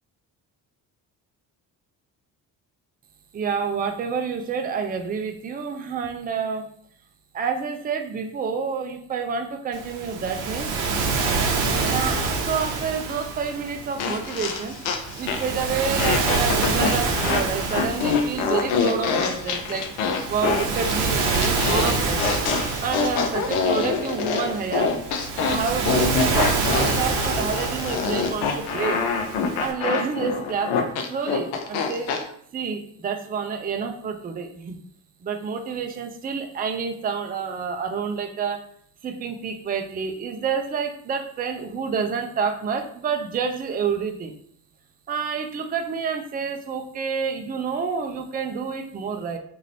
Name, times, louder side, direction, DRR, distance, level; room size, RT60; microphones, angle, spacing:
voice 1, 3.3-6.7 7.3-10.7 11.9-14.8 15.2-19.9 20.3-22.4 22.8-25.0 25.5-29.0 29.6-30.7 31.1-32.1 32.5-34.8 35.2-38.6 39.0-44.3 45.1-49.4, right 6 dB, 20° right, 5 dB, 0.4 m, -28 dB
Waves surf, 9.7-29.7, right 4 dB, 75° right, 0.7 m, -27 dB
sound 1, 14.0-15.6 16.0-32.2, left 5 dB, 75° left, 0.6 m, -25 dB
2.8 x 2.5 x 3.0 m, 0.62 s
hypercardioid pair, 45°, 50 cm